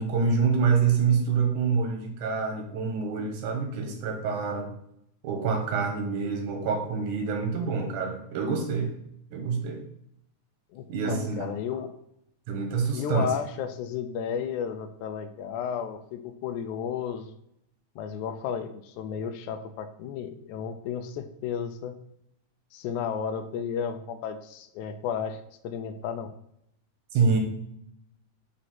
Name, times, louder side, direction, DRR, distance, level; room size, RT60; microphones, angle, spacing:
voice 1, 0.0-4.7 5.2-8.9 9.3-9.8 10.9-11.5 12.5-13.3 27.1-27.4, right 5 dB, 90° right, 3 dB, 2.7 m, -26 dB
voice 2, 10.7-11.9 12.9-17.3 18.0-22.0 22.7-26.3, left 7 dB, 85° left, 9 dB, 2.1 m, -33 dB
7.8 x 4.2 x 4.4 m, 0.76 s
omnidirectional pair, 3.5 m